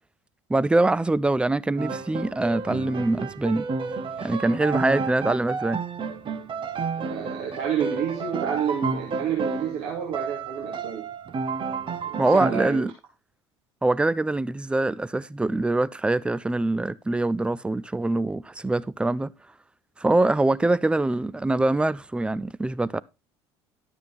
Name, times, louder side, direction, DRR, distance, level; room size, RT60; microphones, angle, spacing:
voice 1, 0.5-3.7 4.2-5.8 12.2-12.9 13.8-19.3 20.0-23.0, right 2 dB, 5° right, 0.4 m, -24 dB
Piano, 1.8-9.8 10.1-12.5, right 4 dB, 35° right, 1.0 m, -31 dB
voice 2, 7.0-11.1 12.2-12.9, right 8 dB, 60° right, 2.4 m, -29 dB
12.0 x 7.1 x 4.1 m
figure-of-eight pair, 65°, 15 cm